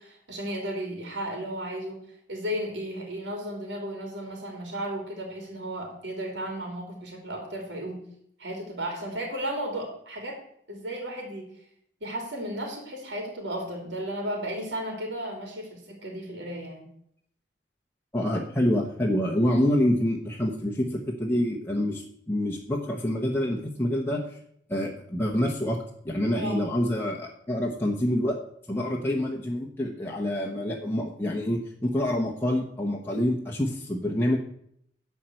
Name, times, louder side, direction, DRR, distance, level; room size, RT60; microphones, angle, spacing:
voice 1, 0.0-2.0 2.3-8.0 8.4-10.4 10.7-11.5 12.0-16.9 26.4-26.7, right 1 dB, 80° right, 1 dB, 2.8 m, -34 dB
voice 2, 18.1-24.2 24.7-28.4 28.7-34.4, left 1 dB, 15° left, -2 dB, 1.1 m, -27 dB
11.0 x 4.6 x 7.7 m, 0.69 s
head